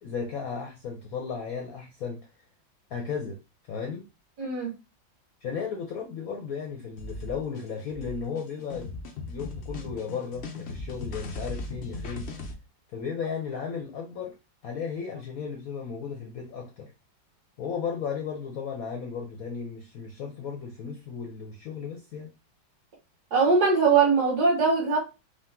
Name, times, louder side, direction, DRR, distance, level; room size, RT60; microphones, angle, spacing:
voice 1, 0.0-2.2 2.9-3.4 3.7-4.1 5.4-12.3 12.9-14.3 14.6-16.9 17.6-22.3, left 6 dB, 65° left, 2 dB, 0.9 m, -35 dB
voice 2, 4.4-4.7 23.3-25.0, right 4 dB, 55° right, -3 dB, 2.4 m, -21 dB
sound 1, 7.0-12.5, left 3 dB, 85° left, 0.5 m, -38 dB
5.1 x 2.3 x 3.6 m, 0.27 s
omnidirectional pair, 2.2 m